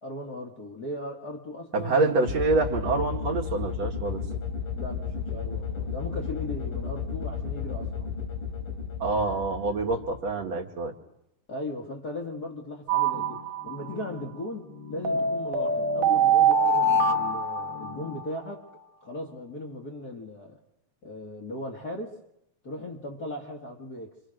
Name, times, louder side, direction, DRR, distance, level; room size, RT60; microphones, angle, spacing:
voice 1, 0.0-2.2 4.7-8.1 11.5-18.7 19.0-20.6 21.0-22.1 22.6-24.1, left 1 dB, 35° left, -2 dB, 2.1 m, -38 dB
voice 2, 1.7-4.2 9.0-10.9, right 3 dB, 55° right, 0 dB, 3.1 m, -26 dB
sound 1, 2.2-10.4, left 6 dB, 85° left, 6.3 m, -33 dB
sound 2, 12.9-13.9 15.0-18.3, right 4 dB, 75° right, 2.6 m, -24 dB
sound 3, 13.1-18.2, left 4 dB, 55° left, 1.2 m, -44 dB
28.0 x 25.5 x 6.5 m, 0.79 s
omnidirectional pair, 3.8 m